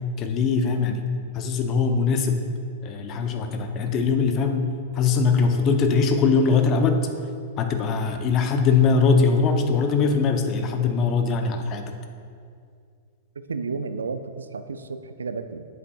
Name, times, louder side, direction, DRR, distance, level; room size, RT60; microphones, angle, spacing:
voice 1, 0.2-1.0 1.3-2.4 2.8-4.7 4.9-7.1 7.6-12.0, left 5 dB, 35° left, 6 dB, 0.7 m, -21 dB
voice 2, 13.4-15.7, right 4 dB, 80° right, 10 dB, 0.3 m, -32 dB
8.0 x 7.5 x 2.4 m, 2.3 s
hypercardioid pair, 105°, 0 cm